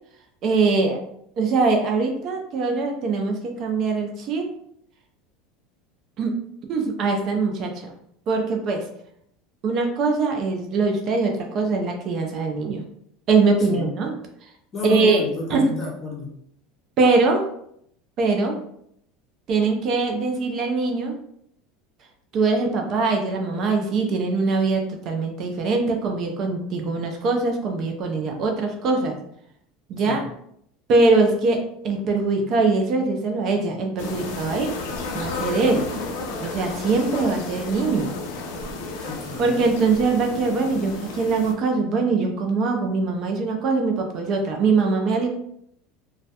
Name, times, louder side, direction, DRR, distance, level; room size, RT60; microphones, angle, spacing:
voice 1, 0.4-1.0 1.4-4.5 6.2-6.3 6.7-7.9 8.3-8.9 9.6-12.8 13.3-14.1 14.4-14.5 14.8-15.2 15.5-15.7 17.0-17.4 18.2-18.6 19.5-21.1 22.3-29.1 29.9-30.2 30.9-34.7 35.1-35.9 36.4-38.2 39.4-45.3, right 3 dB, 40° right, 3 dB, 0.4 m, -22 dB
voice 2, 14.7-16.3 30.1-30.3 39.0-39.6, left 2 dB, 25° left, -1 dB, 0.6 m, -32 dB
sound 1, 34.0-41.5, left 3 dB, 90° left, 0.4 m, -32 dB
2.2 x 2.1 x 2.7 m, 0.71 s
supercardioid pair, 155°, 0 cm